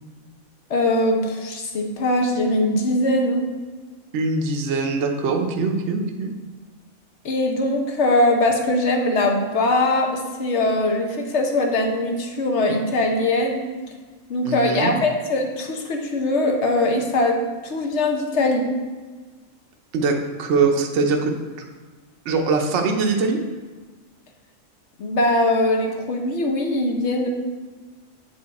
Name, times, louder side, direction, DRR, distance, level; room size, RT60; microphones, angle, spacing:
voice 1, 0.7-3.4 7.2-13.7 14.3-17.4 17.6-18.7 25.0-27.3, left 2 dB, 60° left, 3 dB, 1.1 m, -21 dB
voice 2, 4.1-6.3 14.4-15.0 19.9-21.3 22.3-23.4, right 4 dB, 65° right, 3 dB, 1.0 m, -22 dB
8.4 x 4.6 x 4.1 m, 1.4 s
omnidirectional pair, 1.4 m